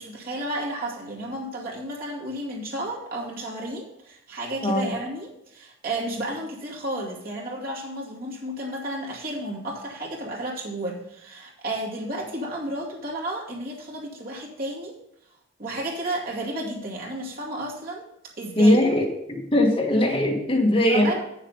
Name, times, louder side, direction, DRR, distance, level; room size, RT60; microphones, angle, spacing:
voice 1, 0.0-15.0 15.6-18.1 18.4-18.9 20.9-21.2, right 1 dB, 55° right, -3 dB, 2.4 m, -32 dB
voice 2, 18.6-21.1, left 1 dB, 30° left, 1 dB, 1.5 m, -20 dB
8.4 x 7.4 x 5.4 m, 0.78 s
head